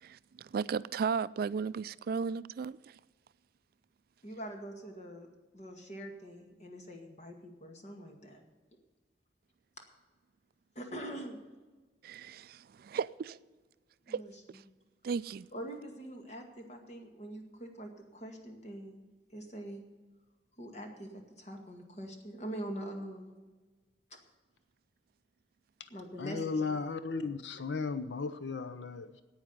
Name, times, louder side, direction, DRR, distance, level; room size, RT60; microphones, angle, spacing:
voice 1, 0.0-2.9 12.0-13.4 14.1-14.2 15.0-15.5, right 5 dB, 55° right, 0.3 m, -35 dB
voice 2, 4.2-5.3 5.5-8.4 10.8-11.4 14.1-14.6 15.5-19.1 19.3-19.8 20.6-23.3 24.1-24.2 25.9-26.8, right 1 dB, 40° left, 2.1 m, -44 dB
voice 3, 26.2-29.2, left 4 dB, 80° left, 0.7 m, -35 dB
9.7 x 8.9 x 9.2 m
head